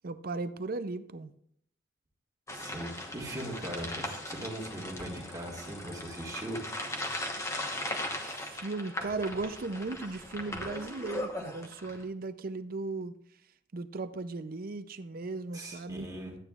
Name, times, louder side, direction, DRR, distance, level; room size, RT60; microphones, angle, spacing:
voice 1, 0.0-1.3 8.2-13.1 13.7-16.1, right 3 dB, 50° right, 0.5 m, -37 dB
sound 1, 2.5-12.0, left 1 dB, 15° left, 1.0 m, -38 dB
voice 2, 2.5-6.6 15.5-16.4, right 1 dB, 20° right, 1.9 m, -40 dB
12.5 x 9.0 x 2.4 m
head